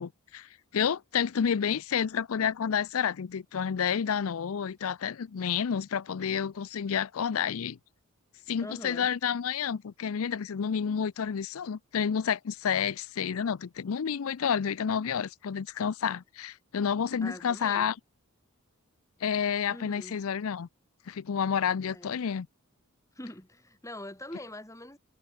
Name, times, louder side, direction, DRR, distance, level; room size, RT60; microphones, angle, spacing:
voice 1, 0.0-7.8 8.5-17.9 19.2-20.7 21.1-22.5, left 7 dB, 65° left, 0.5 m, -30 dB
voice 2, 8.6-9.1 17.2-17.9 19.7-20.2 21.9-22.2 23.1-25.0, left 1 dB, 15° left, 4.2 m, -43 dB
head